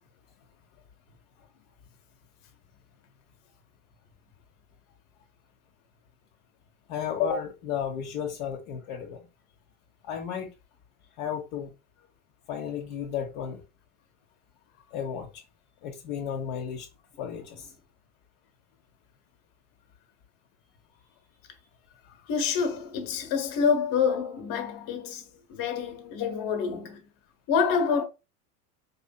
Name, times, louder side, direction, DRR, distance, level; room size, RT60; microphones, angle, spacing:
voice 1, 6.9-9.2 10.0-10.5 11.2-11.7 12.5-13.6 14.9-15.3 15.8-16.9 17.2-17.7 26.2-26.5, left 8 dB, 60° left, 0.9 m, -33 dB
voice 2, 22.1-27.0 27.5-28.0, left 6 dB, 45° left, 1.2 m, -27 dB
4.8 x 2.7 x 2.2 m
hypercardioid pair, 100°, 47 cm